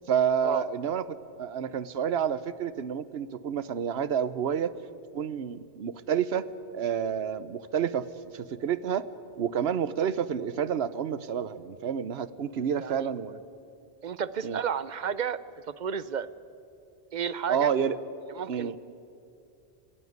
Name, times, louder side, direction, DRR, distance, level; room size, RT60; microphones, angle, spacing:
voice 1, 0.1-1.1 1.4-4.8 5.1-6.5 6.7-8.1 8.3-9.1 9.4-13.4 14.4-14.6 17.5-18.0 18.5-18.8, right 8 dB, 75° right, 16 dB, 1.1 m, -29 dB
voice 2, 12.8-13.1 14.0-16.3 17.1-17.7 18.4-18.7, right 7 dB, 50° right, 16 dB, 0.7 m, -32 dB
27.0 x 15.5 x 9.5 m, 2.6 s
omnidirectional pair, 1.1 m